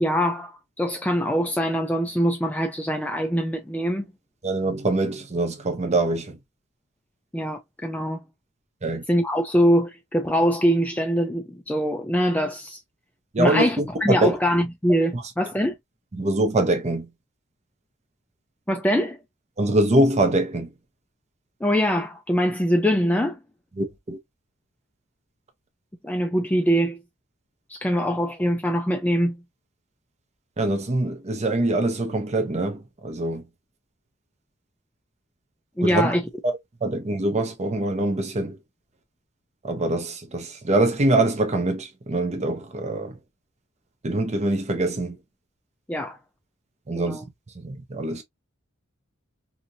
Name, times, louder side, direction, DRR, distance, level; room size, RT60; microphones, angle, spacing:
voice 1, 0.0-4.0 7.3-8.2 9.1-12.8 13.4-15.7 18.7-19.2 21.6-23.4 26.0-27.0 27.7-29.4 35.8-36.2 45.9-46.2 46.9-47.2, equal, 10° left, 0.4 m, -23 dB
voice 2, 4.4-6.4 8.8-9.0 13.3-14.4 15.1-15.2 16.1-17.1 19.6-20.7 23.8-24.2 30.6-33.4 35.8-36.1 36.4-38.6 39.6-43.1 44.0-45.2 46.9-47.2 47.6-48.2, right 2 dB, 30° right, 0.6 m, -24 dB
2.9 x 2.6 x 2.6 m
head